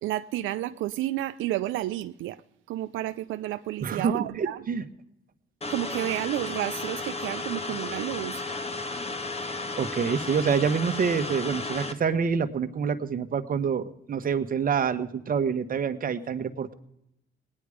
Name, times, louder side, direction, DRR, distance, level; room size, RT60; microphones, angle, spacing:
voice 1, 0.0-2.4 2.7-4.6 5.7-8.4, right 14 dB, 85° right, 0.5 m, -31 dB
voice 2, 3.8-4.8 9.8-16.7, right 6 dB, 45° right, 1.2 m, -27 dB
sound 1, 5.6-11.9, left 3 dB, 30° left, 1.3 m, -34 dB
19.0 x 9.7 x 5.0 m
cardioid pair, 90°, 20 cm